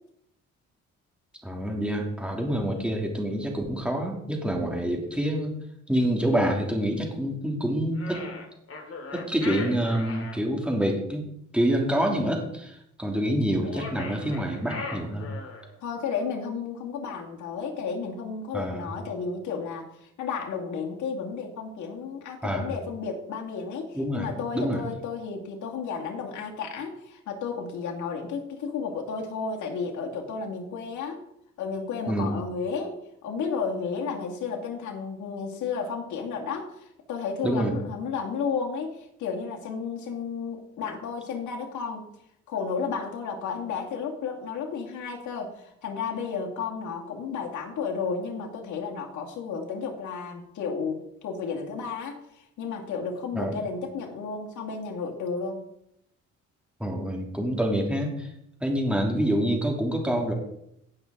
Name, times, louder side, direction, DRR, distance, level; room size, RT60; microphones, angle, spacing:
voice 1, 1.4-5.5 5.9-8.2 9.1-11.3 11.5-15.3 18.5-18.9 22.4-22.7 23.9-24.8 32.1-32.4 37.4-37.8 53.3-53.5 56.8-58.3 58.6-60.3, right 1 dB, 5° right, 0 dB, 2.9 m, -27 dB
sound 1, 8.0-10.4 13.6-15.7, left 4 dB, 50° left, 2.4 m, -38 dB
voice 2, 15.8-31.2 31.6-42.0 42.5-55.6, left 5 dB, 75° left, 0 dB, 2.3 m, -33 dB
17.5 x 6.0 x 3.9 m, 0.77 s
cardioid pair, 90°, 30 cm